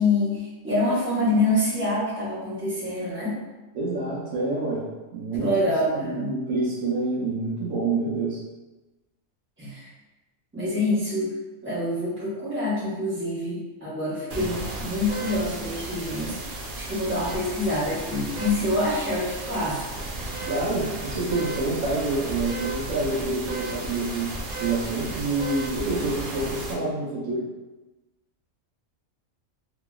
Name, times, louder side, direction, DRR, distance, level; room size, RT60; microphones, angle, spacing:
voice 1, 0.0-3.4 5.4-6.3 9.6-9.9 10.5-11.4 11.6-16.4 16.8-19.8, left 1 dB, 10° right, -11 dB, 1.1 m, -26 dB
voice 2, 3.7-4.8 5.1-8.4 20.5-27.4, right 3 dB, 90° right, -10 dB, 1.2 m, -27 dB
sound 1, 14.3-26.7, right 2 dB, 70° right, 0.5 m, -34 dB
3.0 x 2.8 x 2.3 m, 1.1 s
omnidirectional pair, 1.4 m